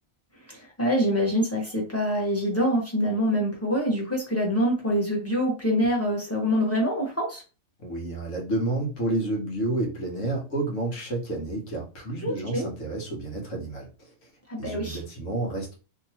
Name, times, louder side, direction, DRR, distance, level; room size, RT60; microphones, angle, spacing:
voice 1, 0.5-7.4 12.2-12.7 14.5-15.0, equal, 10° left, -3 dB, 1.1 m, -25 dB
voice 2, 7.8-14.3 14.6-15.7, right 2 dB, 70° left, 0 dB, 1.4 m, -30 dB
2.9 x 2.8 x 2.8 m, 0.33 s
omnidirectional pair, 1.4 m